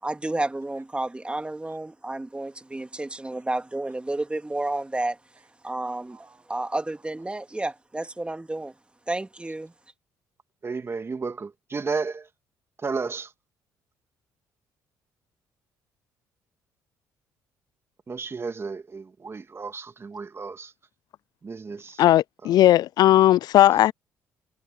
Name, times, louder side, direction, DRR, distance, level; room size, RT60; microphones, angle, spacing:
voice 1, 0.0-5.2 5.6-8.7 9.1-9.7, right 2 dB, 15° right, 2.6 m, -31 dB
voice 2, 10.6-12.3 12.8-13.3 18.1-20.7 21.4-22.0 22.4-22.7 23.7-23.9, right 4 dB, 35° right, 2.9 m, -33 dB
voice 3, 22.0-23.9, left 13 dB, 65° left, 0.4 m, -17 dB
hypercardioid pair, 60°, 7 cm